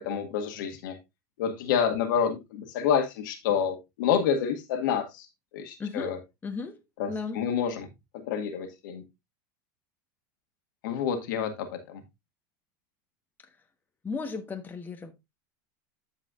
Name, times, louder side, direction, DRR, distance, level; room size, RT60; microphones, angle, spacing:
voice 1, 0.0-1.0 1.4-5.2 5.5-6.2 7.0-7.9 8.3-9.0 10.8-11.5 11.9-12.0, left 7 dB, 80° left, 1.9 m, -28 dB
voice 2, 5.8-6.2 6.4-6.8 7.1-7.4 14.0-15.1, left 4 dB, 15° left, 1.3 m, -35 dB
14.0 x 4.8 x 2.5 m
supercardioid pair, 115°, 11 cm